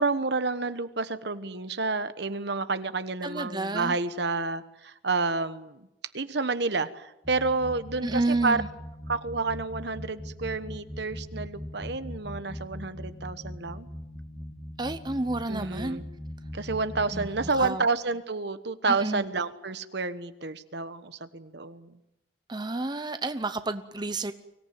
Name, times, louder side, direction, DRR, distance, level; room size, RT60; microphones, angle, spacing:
voice 1, 0.0-5.9 6.1-8.6 9.1-13.9 15.5-16.0 16.5-21.9, right 3 dB, 65° right, 12 dB, 1.2 m, -30 dB
voice 2, 3.2-4.0 8.0-8.7 14.8-16.0 17.1-17.9 18.9-19.3 22.5-24.3, right 2 dB, 25° right, 10 dB, 0.8 m, -30 dB
sound 1, 7.2-17.7, equal, ahead, 1.9 m, -40 dB
24.0 x 17.5 x 9.4 m, 0.88 s
head